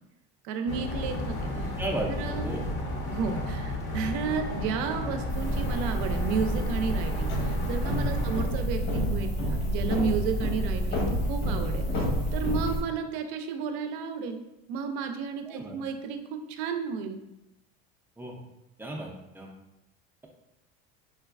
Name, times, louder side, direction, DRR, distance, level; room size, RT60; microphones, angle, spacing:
voice 1, 0.4-1.5 2.1-2.5 3.1-11.9 12.3-14.4 14.7-17.2, right 6 dB, 70° right, 6 dB, 0.5 m, -32 dB
sound 1, 0.7-8.4, left 1 dB, 40° left, 0.7 m, -33 dB
voice 2, 1.8-2.1 2.4-2.6 7.9-8.2 12.6-12.7 15.5-15.8 18.2-18.4 18.8-19.1 19.3-19.5, right 1 dB, 5° right, -1 dB, 0.4 m, -34 dB
sound 2, 5.3-12.8, equal, 65° left, 1.2 m, -29 dB
4.4 x 2.3 x 2.3 m, 0.91 s
supercardioid pair, 125°, 29 cm